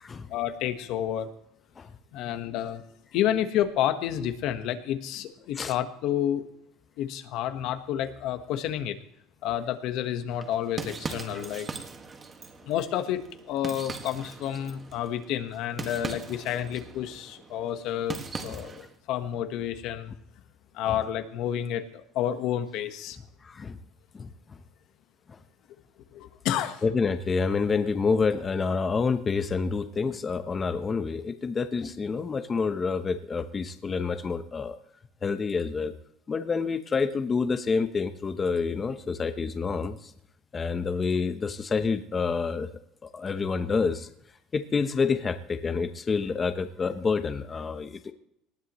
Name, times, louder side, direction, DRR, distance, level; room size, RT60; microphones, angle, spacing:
voice 1, 0.3-1.3 2.1-2.8 3.1-6.4 7.0-9.0 9.4-11.7 12.6-13.2 13.5-20.1 20.7-23.2 26.1-26.8, left 11 dB, 65° left, 9 dB, 1.3 m, -30 dB
sound 1, 10.3-18.9, right 4 dB, 25° right, 1.8 m, -40 dB
voice 2, 23.4-23.8 24.1-24.6 25.3-25.4 26.8-34.8 35.2-35.9 36.3-40.1 40.5-42.7 43.0-44.1 44.5-48.1, left 5 dB, 25° left, 9 dB, 0.9 m, -28 dB
19.0 x 12.5 x 3.1 m, 0.75 s
cardioid pair, 120°, 0 cm